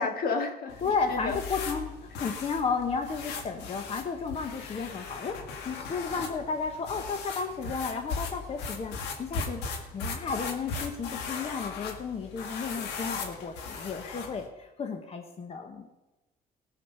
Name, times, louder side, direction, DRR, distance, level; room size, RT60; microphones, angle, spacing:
voice 1, 0.0-0.8 1.1-1.4 2.2-2.4, left 4 dB, 60° left, 5 dB, 1.9 m, -31 dB
sound 1, 0.7-14.5, left 5 dB, 90° left, 1.8 m, -38 dB
voice 2, 0.8-5.4 5.6-15.9, left 5 dB, 35° left, 5 dB, 1.1 m, -33 dB
18.5 x 6.5 x 5.6 m, 1.1 s
cardioid pair, 110°, 17 cm